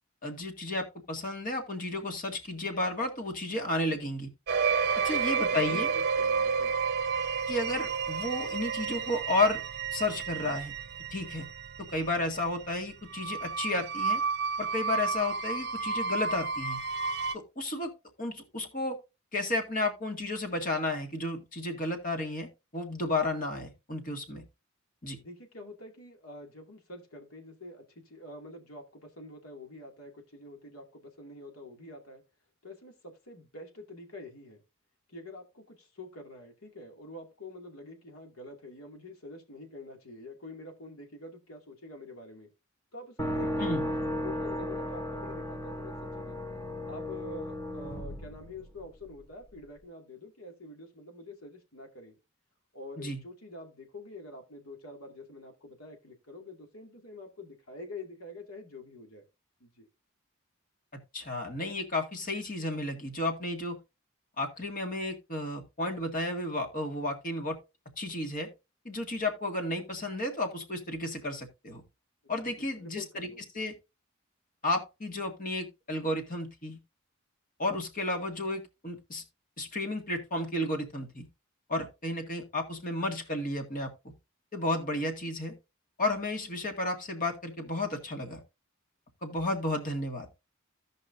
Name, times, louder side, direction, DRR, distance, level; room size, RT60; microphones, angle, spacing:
voice 1, 0.2-4.3 5.0-5.9 7.5-9.6 9.9-10.7 11.1-11.5 11.9-14.2 14.6-16.8 17.3-17.9 18.2-19.0 19.3-24.4 25.0-25.2 43.6-43.8 53.0-53.2 61.1-63.8 64.4-67.6 68.0-68.5 68.9-71.8 72.3-73.3 73.5-73.7 74.6-76.8 77.6-79.2 79.6-81.3 81.7-83.9 84.5-85.6 86.0-88.4 89.2-90.3, left 2 dB, 40° left, 1.9 m, -32 dB
sound 1, 4.5-17.3, right 5 dB, 50° right, 0.7 m, -31 dB
voice 2, 5.0-6.7 25.2-32.2 32.6-34.6 35.1-42.5 42.9-46.4 46.9-52.2 52.7-59.2 59.6-59.9 72.2-73.5, left 2 dB, 90° left, 2.4 m, -46 dB
sound 2, 43.2-49.1, left 1 dB, 15° left, 1.0 m, -35 dB
16.0 x 5.4 x 2.6 m
head